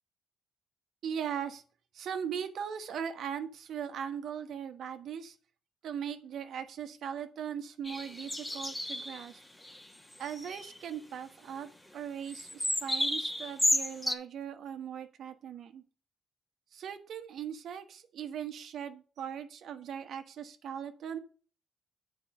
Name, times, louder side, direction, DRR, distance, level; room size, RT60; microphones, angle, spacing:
voice 1, 1.0-1.6 1.9-5.4 5.8-9.4 10.2-15.8 16.7-21.2, right 8 dB, 70° right, 7 dB, 1.3 m, -39 dB
sound 1, 7.8-9.3 9.6-9.8 10.1-10.8 12.3-14.1, left 1 dB, 10° left, 1.4 m, -32 dB
8.8 x 5.0 x 6.5 m, 0.40 s
cardioid pair, 90°, 0 cm